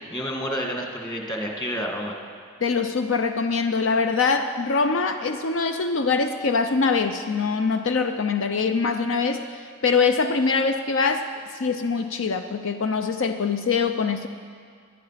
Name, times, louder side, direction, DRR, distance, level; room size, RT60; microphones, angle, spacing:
voice 1, 0.1-2.2, equal, 20° left, 1 dB, 1.8 m, -29 dB
voice 2, 2.6-14.3, left 4 dB, 70° left, 8 dB, 0.6 m, -23 dB
19.0 x 11.0 x 5.7 m, 2.1 s
head